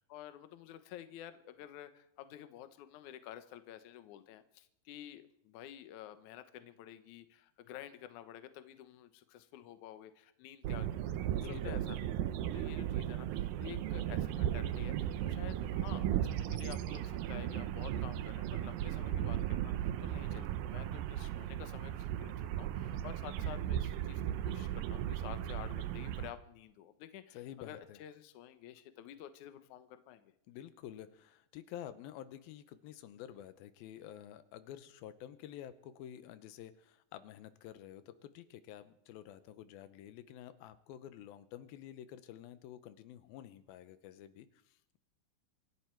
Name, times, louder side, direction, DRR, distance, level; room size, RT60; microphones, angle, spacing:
voice 1, 0.1-12.0 12.4-30.3, left 11 dB, 70° left, 10 dB, 2.2 m, -50 dB
sound 1, 10.6-26.3, right 11 dB, 80° right, 2.5 m, -36 dB
voice 2, 11.5-12.0 27.3-28.0 30.5-45.0, left 11 dB, 90° left, 12 dB, 2.7 m, -50 dB
26.5 x 11.5 x 4.6 m, 0.74 s
omnidirectional pair, 4.2 m